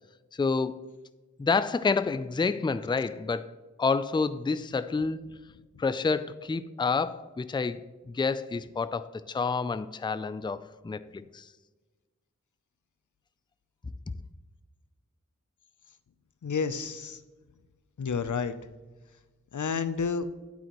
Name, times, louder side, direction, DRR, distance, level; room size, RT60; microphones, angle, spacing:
voice 1, 0.3-0.8 1.4-3.5 3.8-5.2 5.8-11.5, left 4 dB, 15° left, 14 dB, 0.4 m, -29 dB
voice 2, 16.4-17.2 18.0-18.5 19.5-20.3, left 5 dB, 80° left, 12 dB, 0.6 m, -30 dB
9.4 x 8.4 x 3.0 m, 1.3 s
wide cardioid pair, 50°, 30 cm